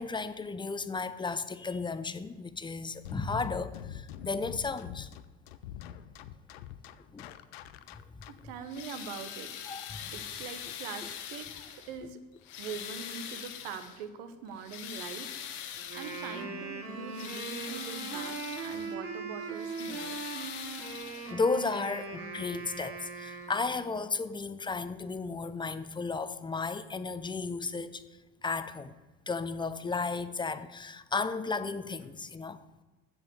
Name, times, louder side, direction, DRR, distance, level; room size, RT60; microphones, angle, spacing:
voice 1, 0.0-5.1 7.1-7.3 8.1-8.2 9.7-10.1 21.3-28.0 28.4-29.0 29.3-32.6, left 4 dB, 15° left, 0.6 m, -34 dB
sound 1, 3.0-8.6, left 10 dB, 90° left, 0.6 m, -44 dB
voice 2, 8.3-9.5 10.1-12.2 12.6-15.4 15.9-20.2, right 6 dB, 80° right, 1.1 m, -43 dB
sound 2, 8.6-12.0 12.4-14.0 14.5-16.4 16.9-18.9 19.4-21.6 22.6-22.7 23.4-23.5, left 9 dB, 70° left, 1.3 m, -42 dB
Wind instrument woodwind instrument, 15.8-23.9, right 4 dB, 50° right, 2.4 m, -40 dB
7.8 x 7.2 x 7.1 m
supercardioid pair, 85°, 30 cm